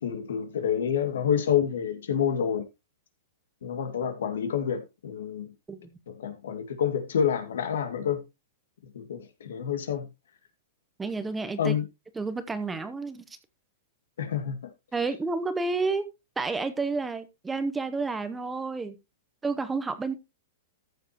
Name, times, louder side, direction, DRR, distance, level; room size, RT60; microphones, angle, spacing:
voice 1, 0.0-2.7 3.6-5.5 6.1-8.2 8.9-10.1 11.6-11.8 14.2-14.6, left 8 dB, 85° left, 2.1 m, -28 dB
voice 2, 11.0-11.7 12.2-13.2 14.9-16.0 16.4-18.9 19.4-20.1, right 3 dB, 10° right, 0.9 m, -30 dB
14.0 x 7.3 x 3.0 m
hypercardioid pair, 160°, 0 cm